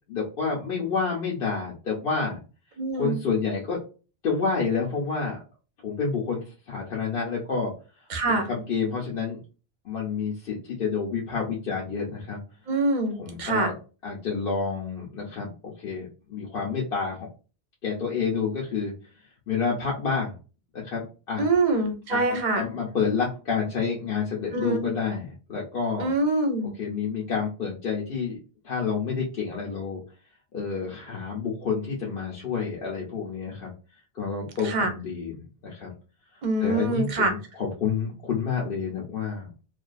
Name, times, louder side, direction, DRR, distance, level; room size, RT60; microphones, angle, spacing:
voice 1, 0.1-2.4 2.9-3.8 4.2-5.4 5.8-7.7 8.3-9.4 9.8-12.4 13.2-13.8 14.0-15.5 15.8-17.3 17.8-18.9 19.5-20.3 20.7-21.4 22.1-26.1 26.6-28.4 28.6-30.0 30.5-33.7 34.1-35.9 36.6-39.5, left 5 dB, 65° left, -4 dB, 0.9 m, -29 dB
voice 2, 2.8-3.2 8.1-8.5 12.7-13.7 21.4-22.6 24.5-24.9 26.0-26.7 34.6-34.9 36.4-37.3, right 2 dB, 50° right, 5 dB, 0.7 m, -25 dB
2.5 x 2.3 x 2.3 m, 0.33 s
omnidirectional pair, 1.1 m